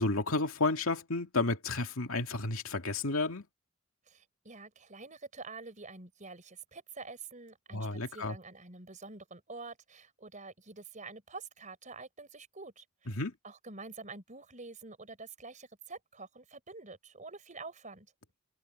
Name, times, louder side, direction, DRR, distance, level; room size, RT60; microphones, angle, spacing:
voice 1, 0.0-3.4 7.7-8.4 13.2-13.3, left 3 dB, 75° left, 2.3 m, -31 dB
voice 2, 4.1-13.2 13.4-18.1, right 3 dB, 35° right, 4.2 m, -47 dB
head